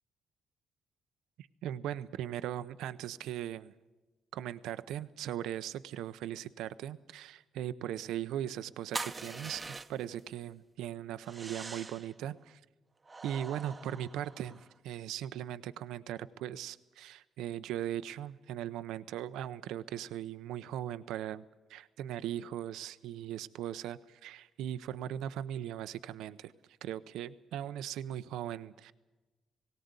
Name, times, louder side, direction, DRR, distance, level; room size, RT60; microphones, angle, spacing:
voice 1, 1.4-3.7 4.3-9.6 9.9-12.6 13.2-21.4 21.7-26.5 26.8-28.9, right 11 dB, 85° right, 13 dB, 0.6 m, -39 dB
sound 1, 8.9-10.2 11.2-12.1 13.1-14.7, right 3 dB, 25° right, 0.9 m, -43 dB
18.5 x 18.0 x 8.2 m, 1.1 s
cardioid pair, 90°, 0 cm